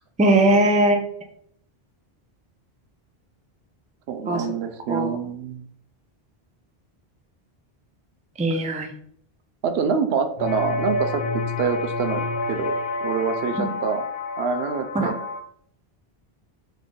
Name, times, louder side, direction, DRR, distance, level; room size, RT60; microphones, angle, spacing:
voice 1, 0.2-1.0 4.3-4.4 4.9-5.2 8.4-8.9 13.6-13.7 14.9-15.1, right 1 dB, 10° right, 4 dB, 0.4 m, -19 dB
voice 2, 4.1-5.7 8.5-8.6 9.6-12.7 13.0-14.0 14.4-15.2, right 6 dB, 80° right, 7 dB, 0.8 m, -26 dB
sound 1, 10.4-15.4, left 3 dB, 70° left, 0.8 m, -28 dB
4.0 x 3.2 x 3.7 m, 0.65 s
omnidirectional pair, 1.0 m